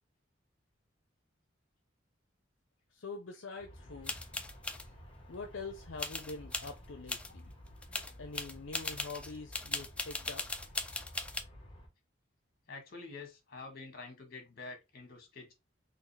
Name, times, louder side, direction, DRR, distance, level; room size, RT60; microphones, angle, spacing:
voice 1, 2.9-4.2 5.3-7.5 8.2-10.4, left 4 dB, 70° left, 0.6 m, -45 dB
Aircraft, 3.6-11.9, equal, 30° left, 1.3 m, -53 dB
sound 1, 4.0-4.8 6.0-6.7 7.1-7.3 7.7-11.4, left 2 dB, 5° left, 0.4 m, -38 dB
voice 2, 7.8-8.2 12.7-15.5, left 3 dB, 50° left, 1.6 m, -48 dB
4.1 x 2.8 x 3.3 m
head